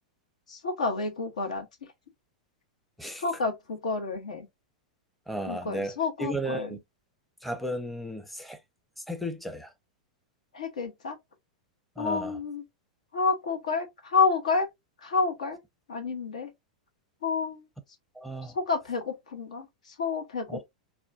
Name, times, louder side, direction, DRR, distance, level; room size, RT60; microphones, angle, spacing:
voice 1, 0.5-1.7 3.2-4.5 5.5-6.8 10.5-11.2 12.0-12.6 13.1-14.7 15.0-15.6 15.9-16.5 17.2-17.6 18.5-20.6, left 4 dB, 70° left, 1.0 m, -29 dB
voice 2, 5.3-6.8 7.4-8.6 9.1-9.7 12.0-12.3 18.2-18.5 20.5-20.6, right 1 dB, ahead, 0.6 m, -34 dB
4.1 x 2.3 x 2.4 m
figure-of-eight pair, 95°, 4 cm